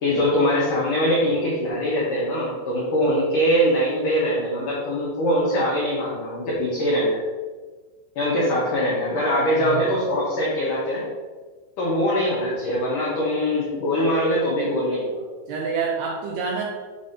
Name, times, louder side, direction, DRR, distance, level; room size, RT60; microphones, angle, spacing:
voice 1, 0.0-7.2 8.2-11.1 11.8-15.2, equal, 85° left, -6 dB, 1.8 m, -22 dB
voice 2, 9.6-9.9 15.5-16.7, right 5 dB, 85° right, -2 dB, 2.3 m, -27 dB
6.8 x 5.0 x 2.7 m, 1.4 s
omnidirectional pair, 5.3 m